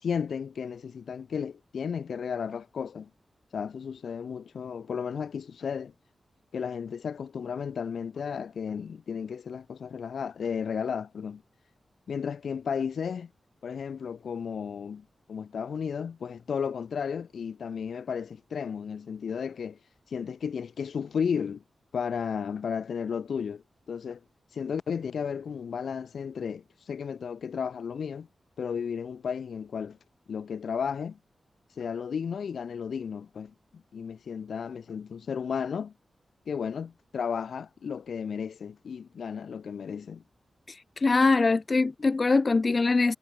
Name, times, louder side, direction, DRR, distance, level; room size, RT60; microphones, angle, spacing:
voice 1, 0.0-3.1 3.5-5.9 6.5-11.4 12.1-13.3 13.6-19.8 20.1-21.6 21.9-24.2 24.5-28.3 28.6-30.0 30.3-31.2 31.8-35.9 36.5-40.2, left 6 dB, 85° left, 4.6 m, -33 dB
voice 2, 40.7-43.2, left 3 dB, 35° left, 1.4 m, -23 dB
wide cardioid pair, 155°, 0 cm